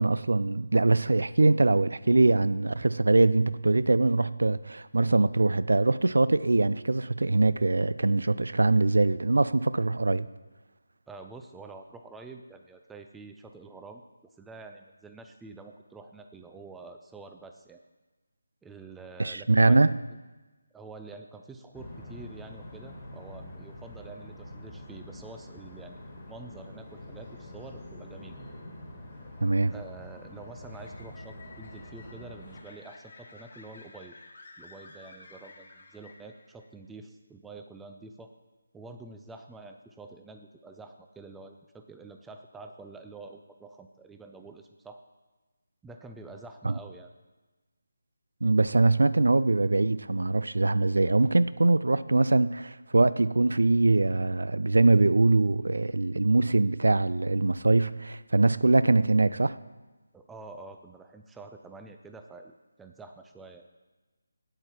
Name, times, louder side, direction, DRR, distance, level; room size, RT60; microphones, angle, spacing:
voice 1, 0.0-10.3 19.2-19.9 29.4-29.7 46.6-46.7 48.4-59.6, right 2 dB, 90° right, 0.3 m, -23 dB
voice 2, 11.1-14.0 14.4-17.8 18.6-20.0 20.7-28.3 29.7-34.2 34.6-38.3 38.7-45.0 45.8-47.1 60.1-62.5 62.8-63.6, right 3 dB, 5° right, 0.3 m, -47 dB
sound 1, 21.7-32.6, left 1 dB, 15° left, 1.5 m, -45 dB
sound 2, 29.1-36.7, left 3 dB, 40° left, 1.2 m, -53 dB
8.9 x 7.9 x 4.4 m
figure-of-eight pair, 170°, 0 cm